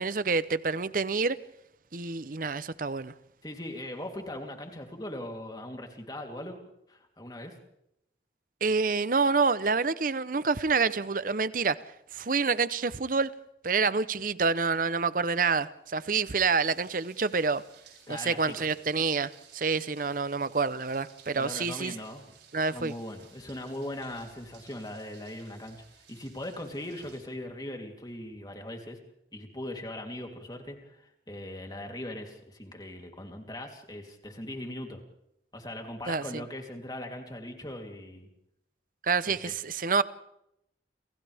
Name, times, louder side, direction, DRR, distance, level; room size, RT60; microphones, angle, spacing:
voice 1, 0.0-1.4 1.9-3.1 8.6-11.8 12.1-13.3 13.6-17.6 18.1-21.9 22.5-22.9 36.1-36.4 39.0-40.0, right 4 dB, 50° right, 0.8 m, -27 dB
voice 2, 3.4-6.6 6.9-7.5 18.1-18.7 21.4-22.2 22.7-25.8 26.1-29.0 29.3-35.0 35.5-38.3 39.2-39.5, left 1 dB, 20° left, 3.3 m, -40 dB
sound 1, 16.7-27.2, right 7 dB, 85° right, 8.0 m, -57 dB
30.0 x 28.5 x 3.6 m
head